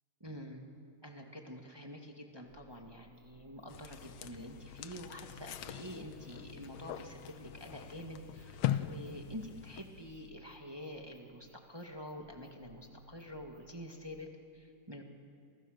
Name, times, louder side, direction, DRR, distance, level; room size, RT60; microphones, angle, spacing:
voice 1, 0.2-0.6 1.0-15.0, equal, 15° right, 2 dB, 0.8 m, -47 dB
sound 1, 2.4-14.3, right 2 dB, 75° right, 4.1 m, -62 dB
sound 2, 3.7-10.3, left 11 dB, 80° left, 1.5 m, -41 dB
29.5 x 28.0 x 6.6 m, 2.3 s
omnidirectional pair, 4.1 m